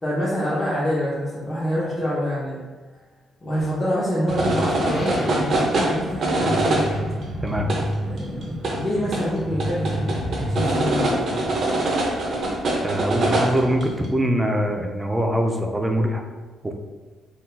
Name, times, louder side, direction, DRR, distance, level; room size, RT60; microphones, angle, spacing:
voice 1, 0.0-2.6 3.4-7.0 8.1-11.5, equal, 20° left, -9 dB, 0.9 m, -26 dB
sound 1, 4.3-14.1, right 1 dB, 55° right, 0.7 m, -24 dB
sound 2, 4.8-5.6 6.7-7.0, left 1 dB, 50° left, 1.1 m, -42 dB
voice 2, 12.8-16.2 16.6-16.7, equal, 10° right, 3 dB, 0.5 m, -23 dB
3.9 x 2.6 x 2.3 m, 1.3 s
cardioid pair, 90°, 0 cm